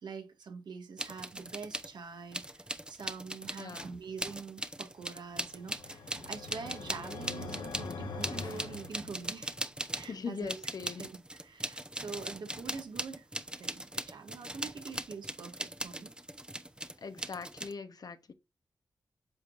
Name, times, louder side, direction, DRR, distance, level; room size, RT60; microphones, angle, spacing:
voice 1, 0.0-9.5 9.9-10.6 11.0-13.3 13.5-16.1, right 5 dB, 80° right, 1.7 m, -45 dB
sound 1, 1.0-1.9 2.3-10.2 10.5-17.7, right 1 dB, 10° right, 0.8 m, -40 dB
voice 2, 3.6-4.0 10.1-11.1 17.0-18.3, left 5 dB, 60° left, 0.9 m, -41 dB
sound 2, 5.3-9.6, left 3 dB, 85° left, 1.3 m, -43 dB
8.2 x 5.1 x 2.5 m
cardioid pair, 50°, 7 cm